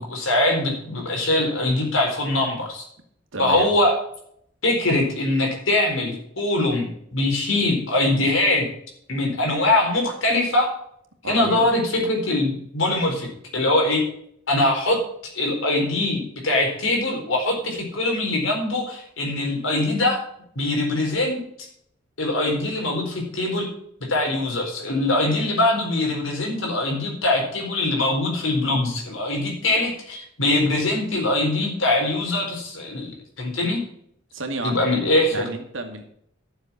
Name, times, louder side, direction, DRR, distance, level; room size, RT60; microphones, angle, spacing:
voice 1, 0.0-2.8 3.4-4.0 4.6-6.9 7.1-8.6 9.1-10.7 11.2-13.3 13.5-14.0 14.5-15.0 15.3-20.2 20.6-21.4 22.2-23.7 24.1-33.8 34.6-35.4, left 2 dB, 80° left, 1 dB, 4.3 m, -22 dB
voice 2, 3.3-3.7 11.2-11.7 34.3-34.8 35.3-36.1, right 2 dB, 80° right, 5 dB, 2.2 m, -31 dB
12.0 x 7.1 x 5.9 m, 0.68 s
head